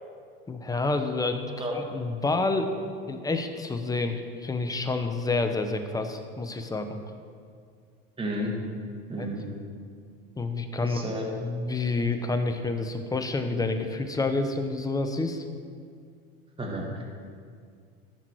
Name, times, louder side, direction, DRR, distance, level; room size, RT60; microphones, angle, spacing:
voice 1, 0.5-1.4 1.7-2.7 3.1-7.0 9.2-9.3 10.4-11.1 11.4-15.4, left 3 dB, 10° left, 6 dB, 0.9 m, -28 dB
voice 2, 8.2-8.5 9.1-9.4 10.8-11.2 16.6-17.0, right 1 dB, 20° right, -1 dB, 2.0 m, -32 dB
15.0 x 6.0 x 4.7 m, 2.1 s
supercardioid pair, 110°, 29 cm